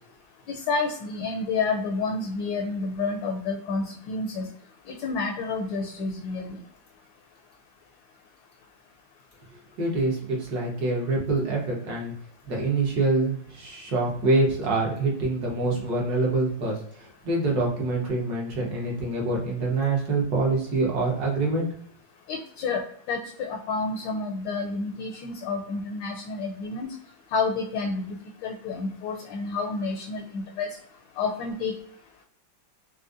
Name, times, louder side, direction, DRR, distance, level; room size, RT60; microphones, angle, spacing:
voice 1, 0.5-4.5 4.9-6.6 22.3-22.8 23.1-26.9 27.3-28.2 28.4-30.7 31.2-31.7, left 4 dB, 75° left, 1 dB, 1.2 m, -29 dB
voice 2, 9.8-12.1 12.5-21.7, right 3 dB, 55° right, -3 dB, 1.5 m, -25 dB
4.9 x 2.1 x 2.5 m, 0.66 s
omnidirectional pair, 2.2 m